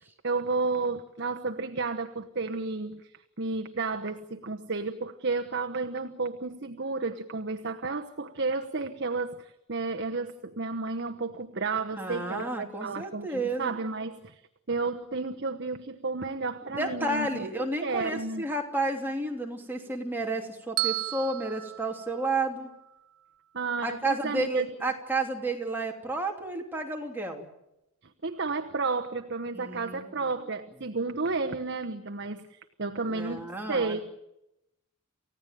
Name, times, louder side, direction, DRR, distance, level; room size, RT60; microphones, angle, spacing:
voice 1, 0.2-3.0 3.4-14.4 14.7-17.4 17.8-18.5 23.5-24.7 28.2-34.0, right 3 dB, 50° right, 5 dB, 1.1 m, -32 dB
voice 2, 11.9-13.7 16.8-22.7 23.8-27.5 29.5-30.3 33.1-34.0, right 2 dB, 10° right, 1 dB, 3.0 m, -31 dB
Bell, 20.8-23.0, right 16 dB, 75° right, 0.8 m, -34 dB
29.0 x 16.0 x 9.1 m, 0.88 s
head